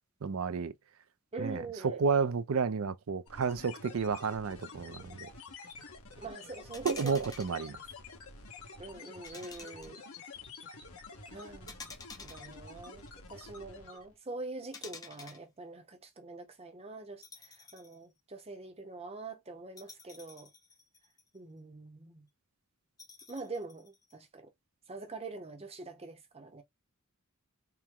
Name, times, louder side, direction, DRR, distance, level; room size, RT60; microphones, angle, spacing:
voice 1, 0.2-0.7 1.4-5.3 6.8-7.8, right 5 dB, 65° right, 0.5 m, -31 dB
voice 2, 1.3-2.0 6.2-7.3 8.8-10.0 11.3-20.5 21.3-22.3 23.3-24.5 24.9-26.6, right 3 dB, 25° right, 0.8 m, -44 dB
sound 1, 3.3-14.1, left 4 dB, 70° left, 1.5 m, -49 dB
sound 2, 6.7-7.6 9.2-10.2 11.7-13.1 14.7-15.4 17.2-18.0 18.4-18.5 19.8-21.4 23.0-24.1, left 4 dB, 15° left, 0.7 m, -49 dB
4.5 x 2.2 x 3.7 m
head